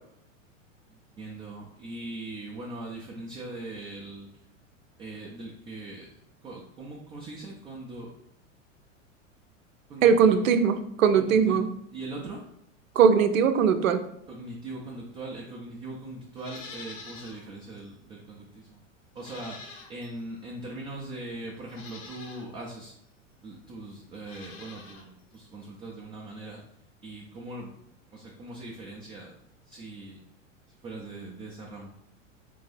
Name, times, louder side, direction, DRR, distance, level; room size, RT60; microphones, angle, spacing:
voice 1, 0.9-4.3 5.0-6.1 6.4-8.1 9.9-10.4 11.2-11.6 11.9-12.4 14.3-18.8 19.1-22.9 23.4-26.6 27.0-27.7 28.1-29.3 29.7-30.2 30.7-31.9, right 2 dB, 15° right, -2 dB, 0.3 m, -40 dB
voice 2, 10.0-11.7 13.0-14.0, right 6 dB, 80° right, 9 dB, 0.5 m, -20 dB
Livestock farm animals working animals, 16.3-17.4 17.8-17.9 19.1-20.2 21.0-21.1 21.7-22.5 24.1-25.1 25.3-25.4, left 4 dB, 70° left, 0.9 m, -46 dB
3.5 x 2.7 x 3.3 m, 0.77 s
hypercardioid pair, 90°, 39 cm